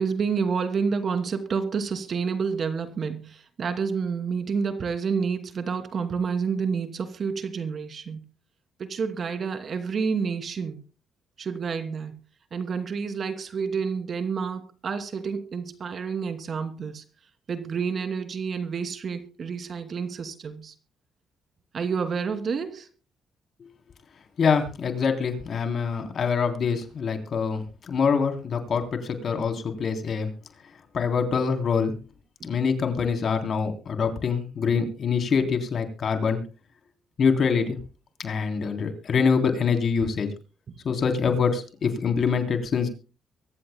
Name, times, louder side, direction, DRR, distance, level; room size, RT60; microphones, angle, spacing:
voice 1, 0.0-8.2 8.8-10.8 11.4-12.2 12.5-17.0 17.5-20.7 21.7-22.9, right 5 dB, 50° right, 2.6 m, -29 dB
voice 2, 24.4-30.3 30.9-31.9 32.4-36.4 37.2-37.8 38.2-40.3 40.8-42.9, left 5 dB, 55° left, 3.4 m, -25 dB
24.0 x 15.0 x 2.2 m
cardioid pair, 90°, 0 cm